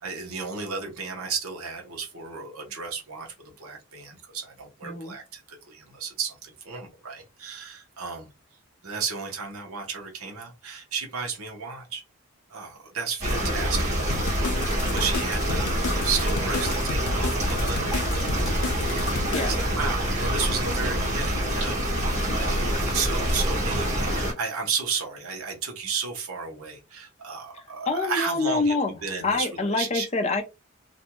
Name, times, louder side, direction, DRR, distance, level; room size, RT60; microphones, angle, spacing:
voice 1, 0.0-8.3 8.8-12.0 12.5-13.9 14.6-18.3 18.9-30.1, right 5 dB, 80° right, 0.9 m, -33 dB
voice 2, 4.8-5.2 13.4-13.6 19.3-19.5 27.5-28.9 29.2-30.4, left 3 dB, 30° left, 0.4 m, -26 dB
sound 1, 13.2-24.3, equal, 30° right, 1.4 m, -26 dB
sound 2, 14.1-19.7, left 4 dB, 85° left, 0.4 m, -34 dB
2.5 x 2.2 x 2.9 m
head